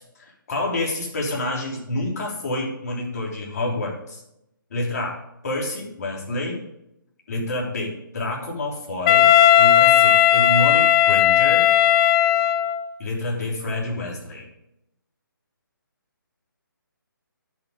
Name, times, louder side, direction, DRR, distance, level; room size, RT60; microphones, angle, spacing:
voice 1, 0.0-4.2 4.7-5.2 5.4-6.6 7.3-9.3 9.6-11.7 13.0-14.5, left 2 dB, 45° left, -1 dB, 3.3 m, -28 dB
Wind instrument woodwind instrument, 9.1-12.9, left 11 dB, 15° left, 0.3 m, -16 dB
10.5 x 8.2 x 4.9 m, 0.83 s
figure-of-eight pair, 145°, 12 cm